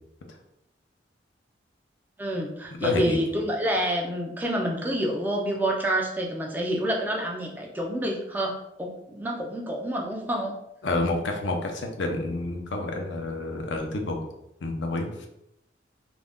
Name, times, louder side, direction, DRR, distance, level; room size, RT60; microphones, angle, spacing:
voice 1, 2.2-10.5, equal, 10° right, 0 dB, 0.3 m, -28 dB
voice 2, 2.8-3.2 10.8-14.2 14.6-15.3, left 2 dB, 75° left, 3 dB, 0.5 m, -29 dB
2.5 x 2.1 x 3.5 m, 0.83 s
head